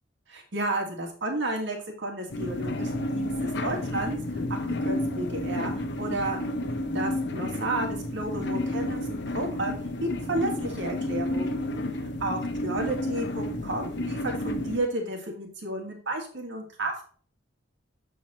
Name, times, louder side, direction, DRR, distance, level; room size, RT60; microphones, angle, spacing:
voice 1, 0.3-4.2 4.8-6.4 6.9-11.6 12.2-17.0, right 2 dB, 70° right, 2 dB, 1.8 m, -32 dB
sound 1, 2.3-14.8, left 1 dB, 65° left, 0.9 m, -31 dB
7.7 x 4.5 x 4.3 m, 0.43 s
head